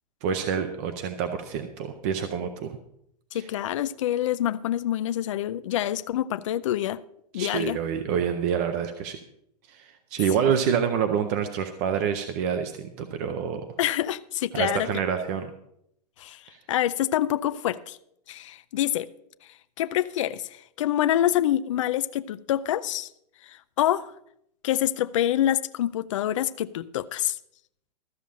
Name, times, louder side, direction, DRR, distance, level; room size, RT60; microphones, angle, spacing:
voice 1, 0.2-2.7 3.3-3.5 7.3-9.2 9.7-13.6 14.5-15.5 16.5-16.6, right 7 dB, 25° right, 0.5 m, -27 dB
voice 2, 3.3-7.0 7.3-7.8 10.4-10.5 13.8-14.9 16.2-16.4 16.7-18.0 18.3-19.1 19.8-23.1 23.4-24.1 24.6-27.4, left 12 dB, 50° left, 0.5 m, -26 dB
13.5 x 7.1 x 6.1 m
supercardioid pair, 180°, 21 cm